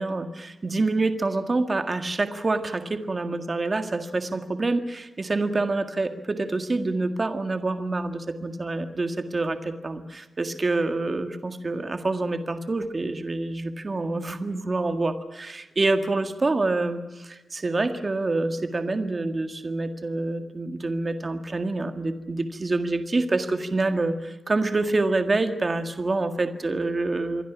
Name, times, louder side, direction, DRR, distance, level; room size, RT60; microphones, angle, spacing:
voice 1, 0.0-27.4, right 2 dB, 30° right, 8 dB, 1.8 m, -27 dB
27.5 x 22.5 x 6.2 m, 1.0 s
wide cardioid pair, 175°, 0 cm